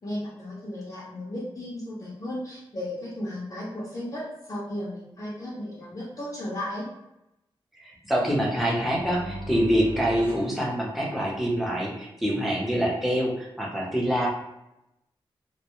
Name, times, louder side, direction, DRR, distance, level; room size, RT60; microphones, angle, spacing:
voice 1, 0.0-6.9, left 1 dB, 35° left, -8 dB, 0.6 m, -35 dB
voice 2, 7.8-14.3, equal, ahead, -4 dB, 0.7 m, -25 dB
sound 1, 8.4-11.5, right 1 dB, 85° right, 0.8 m, -40 dB
2.1 x 2.1 x 2.9 m, 0.89 s
wide cardioid pair, 85°, 10 cm